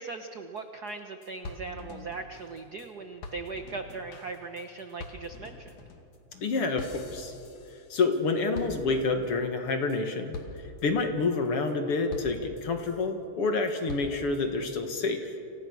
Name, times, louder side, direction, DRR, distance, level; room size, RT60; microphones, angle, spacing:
voice 1, 0.0-5.8, right 3 dB, 75° right, 6 dB, 0.9 m, -39 dB
sound 1, 0.6-0.7 0.9-1.0 1.2-2.9 3.2-8.2 8.5-9.3 9.7-10.0 10.3-10.8 11.2-11.7 12.1-13.0 13.5-14.4, left 3 dB, 80° left, 3.7 m, -44 dB
voice 2, 6.4-7.3 7.9-10.4 10.8-15.2, left 3 dB, 50° left, 5 dB, 2.6 m, -28 dB
30.0 x 27.0 x 6.4 m, 2.8 s
omnidirectional pair, 3.4 m